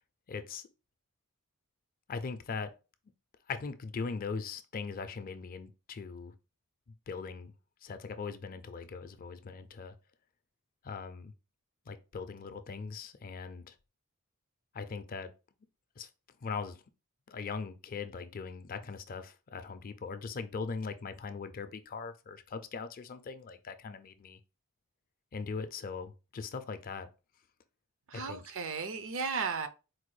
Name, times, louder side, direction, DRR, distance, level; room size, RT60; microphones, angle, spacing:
voice 1, 0.3-0.6 2.1-2.7 3.5-6.3 7.1-7.5 7.8-9.9 10.8-11.3 11.9-13.8 14.7-15.3 16.0-16.1 16.4-16.8 17.3-24.4 25.3-27.1 28.1-28.4, left 5 dB, 40° left, 0.4 m, -40 dB
voice 2, 28.1-29.7, right 5 dB, 60° right, 0.5 m, -35 dB
4.2 x 2.2 x 3.1 m
head